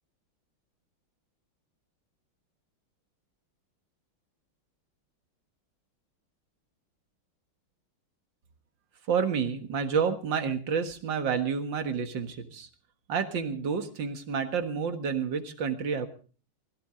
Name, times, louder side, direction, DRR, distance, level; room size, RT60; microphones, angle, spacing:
voice 1, 9.1-12.7 13.1-16.1, right 6 dB, 65° right, 8 dB, 2.3 m, -29 dB
21.5 x 15.5 x 3.8 m, 0.39 s
omnidirectional pair, 2.2 m